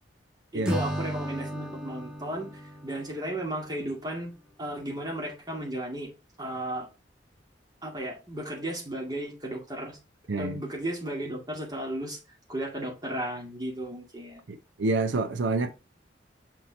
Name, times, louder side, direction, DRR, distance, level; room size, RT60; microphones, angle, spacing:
voice 1, 0.5-4.3 4.6-6.1 6.4-6.9 7.8-10.0 10.4-12.2 12.5-14.4, right 1 dB, 20° right, 2.2 m, -34 dB
Acoustic guitar / Strum, 0.6-3.9, equal, 5° right, 1.1 m, -35 dB
voice 2, 14.5-15.7, right 3 dB, 85° right, 0.6 m, -28 dB
5.7 x 4.6 x 4.1 m
head